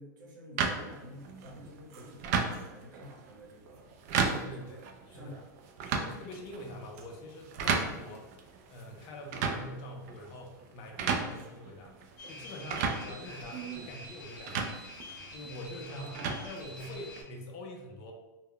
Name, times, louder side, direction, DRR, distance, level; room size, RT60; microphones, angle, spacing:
voice 1, 0.0-3.9 4.5-4.9 5.1-5.5 15.9-16.5, equal, 90° right, -1 dB, 0.9 m, -49 dB
sound 1, 0.6-17.2, right 5 dB, 50° right, 0.4 m, -36 dB
voice 2, 4.2-4.8 5.1-5.3 5.9-8.4 8.7-11.9 12.3-14.7 15.3-16.1 16.3-18.1, left 1 dB, 35° left, 2 dB, 0.5 m, -45 dB
sound 2, 12.2-17.2, left 1 dB, 70° left, 0.8 m, -47 dB
2.2 x 2.0 x 3.6 m, 1.1 s
supercardioid pair, 150°, 10 cm